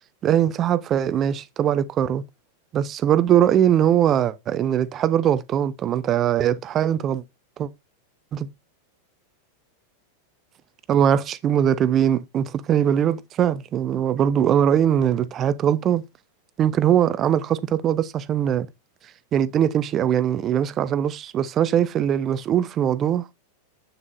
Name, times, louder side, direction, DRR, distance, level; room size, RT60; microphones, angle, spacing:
voice 1, 0.2-2.2 2.7-7.2 7.6-7.7 8.3-8.5 10.9-16.0 16.6-18.7 19.3-23.3, right 10 dB, 30° right, 0.6 m, -21 dB
8.3 x 7.2 x 2.6 m
figure-of-eight pair, 90°, 0 cm